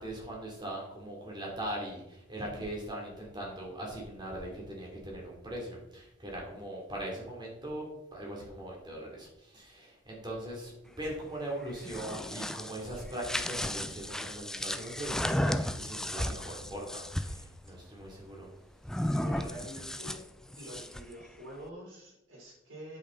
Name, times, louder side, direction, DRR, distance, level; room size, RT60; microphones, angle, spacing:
voice 1, 0.0-18.5, right 1 dB, 25° right, -2 dB, 3.0 m, -40 dB
sound 1, 11.7-17.4 18.8-21.1, left 1 dB, 5° left, 0.4 m, -34 dB
voice 2, 19.2-20.2 20.5-23.0, equal, 85° right, -2 dB, 3.8 m, -46 dB
9.2 x 8.3 x 4.0 m, 0.88 s
head